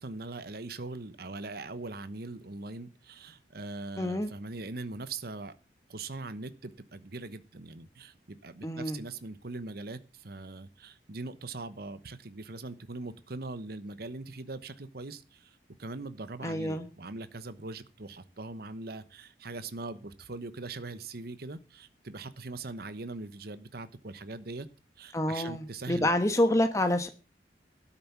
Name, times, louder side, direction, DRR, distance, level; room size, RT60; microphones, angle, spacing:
voice 1, 0.0-5.5 5.9-24.7 25.0-26.1, right 3 dB, 60° right, 13 dB, 1.0 m, -41 dB
voice 2, 4.0-4.3 8.6-9.0 16.4-16.9 25.1-27.1, left 1 dB, 20° left, 7 dB, 1.2 m, -27 dB
12.5 x 7.3 x 7.3 m, 0.34 s
head